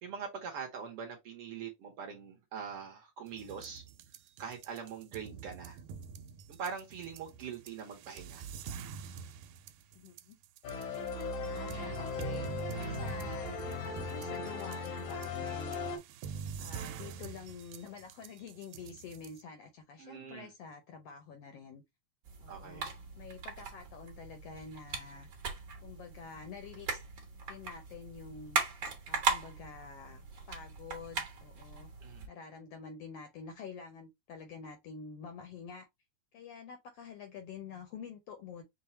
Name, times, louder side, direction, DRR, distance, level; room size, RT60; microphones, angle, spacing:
voice 1, 0.0-3.8 4.4-5.8 6.5-8.5 20.0-20.5 22.5-22.8 32.0-32.3, right 6 dB, 65° right, 1.5 m, -43 dB
sound 1, 3.3-19.4, right 6 dB, 90° right, 2.0 m, -45 dB
voice 2, 9.9-10.4 11.4-12.5 12.9-16.0 16.6-21.8 22.4-22.9 23.2-25.3 25.8-27.0 27.5-28.6 29.1-31.9 32.3-35.9 36.3-38.6, left 5 dB, 75° left, 1.4 m, -48 dB
sound 2, 10.6-16.0, left 4 dB, 90° left, 2.5 m, -38 dB
sound 3, 22.2-32.3, right 5 dB, 50° right, 1.4 m, -39 dB
5.6 x 2.2 x 4.1 m
omnidirectional pair, 3.4 m